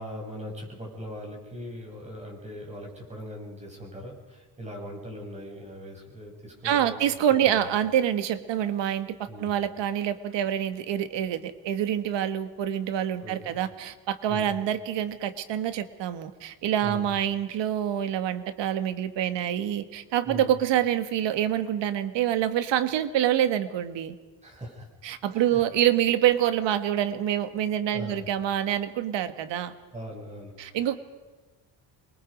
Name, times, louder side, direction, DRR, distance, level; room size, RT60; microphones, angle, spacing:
voice 1, 0.0-7.0 7.3-7.7 9.3-9.5 13.2-13.5 14.3-14.5 16.8-17.1 20.2-20.5 24.4-24.9 25.3-25.6 27.9-28.2 29.9-30.9, equal, 15° right, -1 dB, 7.4 m, -40 dB
voice 2, 6.6-24.1 25.0-29.7 30.6-31.0, right 10 dB, 75° right, 10 dB, 1.7 m, -26 dB
27.5 x 23.0 x 5.3 m, 1.2 s
cardioid pair, 160°, 43 cm